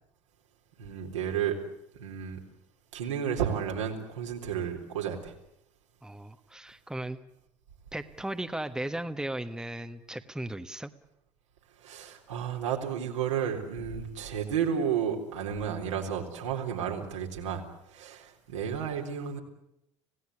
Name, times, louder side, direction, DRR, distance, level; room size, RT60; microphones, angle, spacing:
voice 1, 0.8-1.6 2.0-2.4 2.9-5.3 11.8-17.6 17.9-19.4, right 8 dB, 80° right, 1 dB, 4.0 m, -32 dB
voice 2, 6.0-7.2 7.9-10.9, right 1 dB, 5° right, 8 dB, 1.4 m, -36 dB
26.5 x 17.5 x 9.9 m, 0.80 s
hypercardioid pair, 70°, 16 cm